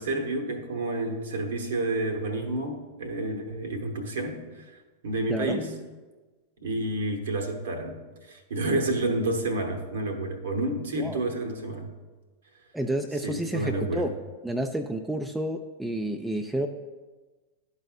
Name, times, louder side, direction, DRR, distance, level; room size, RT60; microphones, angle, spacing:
voice 1, 0.0-4.7 5.0-5.7 6.6-11.9 13.2-14.1, right 2 dB, 60° right, 5 dB, 0.9 m, -30 dB
voice 2, 5.3-5.6 11.0-11.2 12.7-14.1 14.4-16.7, right 1 dB, 5° right, 4 dB, 0.4 m, -30 dB
12.0 x 4.2 x 2.4 m, 1.3 s
figure-of-eight pair, 90°, 0 cm